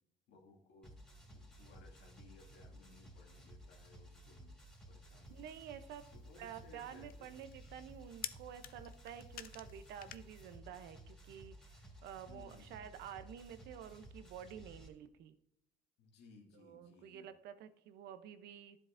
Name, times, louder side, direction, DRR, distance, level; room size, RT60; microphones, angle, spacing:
voice 1, 0.3-4.5 4.9-5.4 6.1-7.4 12.3-13.0 16.0-17.3, left 3 dB, 80° left, 0 dB, 2.2 m, -62 dB
sound 1, 0.8-14.9, equal, 5° left, 2.7 m, -56 dB
sound 2, 5.2-10.6, left 11 dB, 60° left, 0.5 m, -52 dB
voice 2, 5.3-6.1 6.4-15.4 16.5-18.8, right 9 dB, 80° right, 11 dB, 0.7 m, -50 dB
12.0 x 7.7 x 2.6 m, 0.77 s
cardioid pair, 110°, 17 cm